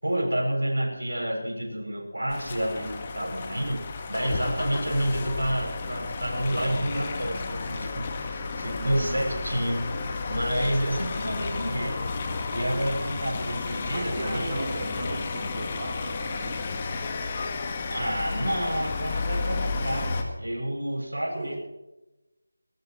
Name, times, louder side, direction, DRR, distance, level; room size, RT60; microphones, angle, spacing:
voice 1, 0.0-3.8 4.1-9.9 10.3-14.6 17.9-20.1 20.4-21.6, right 1 dB, 80° right, 1 dB, 7.2 m, -29 dB
sound 1, 2.3-20.2, left 4 dB, 25° left, 1.7 m, -32 dB
voice 2, 8.8-9.2 13.9-16.7 21.3-21.5, right 2 dB, 35° right, -3 dB, 3.9 m, -36 dB
21.0 x 20.0 x 3.1 m, 0.99 s
figure-of-eight pair, 165°, 0 cm